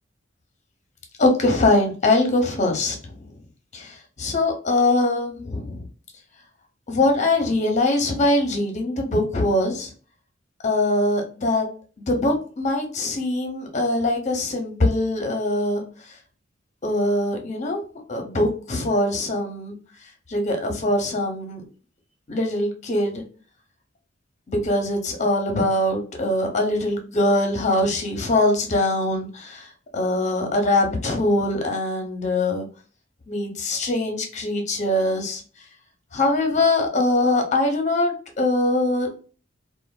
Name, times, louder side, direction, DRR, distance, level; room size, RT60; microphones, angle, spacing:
voice 1, 1.2-3.2 3.7-5.8 6.9-9.9 10.6-11.7 12.1-16.1 16.8-17.8 18.1-19.7 20.3-21.6 22.3-23.2 24.5-32.7 33.3-35.4 36.1-39.1, left 2 dB, 40° left, 3 dB, 0.7 m, -22 dB
3.1 x 2.1 x 2.2 m, 0.39 s
head